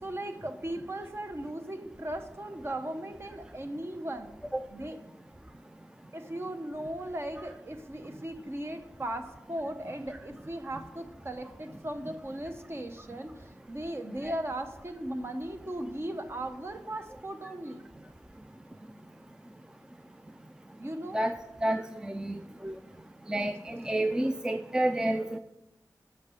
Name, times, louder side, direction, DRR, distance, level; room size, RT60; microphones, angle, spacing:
voice 1, 0.0-4.3 4.7-5.0 6.1-17.9 20.8-21.2, right 1 dB, 35° right, 7 dB, 0.9 m, -37 dB
voice 2, 21.1-22.7 23.3-25.4, right 1 dB, 10° right, 8 dB, 0.4 m, -30 dB
8.1 x 5.4 x 6.5 m, 0.92 s
wide cardioid pair, 85°, 7 cm